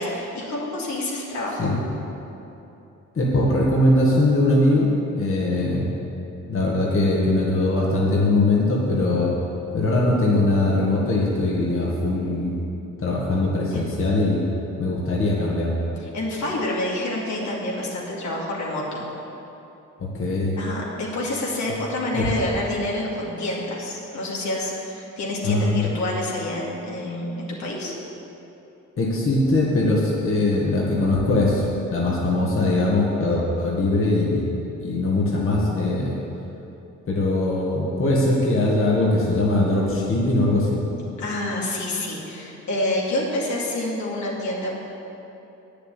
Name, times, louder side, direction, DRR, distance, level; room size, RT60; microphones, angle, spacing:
voice 1, 0.0-1.7 13.7-14.1 15.9-19.0 20.6-27.9 41.2-44.8, left 1 dB, 70° left, -4 dB, 2.5 m, -28 dB
voice 2, 3.2-5.9 6.5-9.3 9.7-12.6 13.0-14.4 14.8-15.7 20.0-20.6 22.1-22.3 25.4-25.9 29.0-31.6 31.9-34.5 34.8-36.1 37.1-40.8, left 2 dB, 45° left, -4 dB, 1.9 m, -21 dB
9.2 x 6.9 x 8.3 m, 2.9 s
cardioid pair, 90°, 30 cm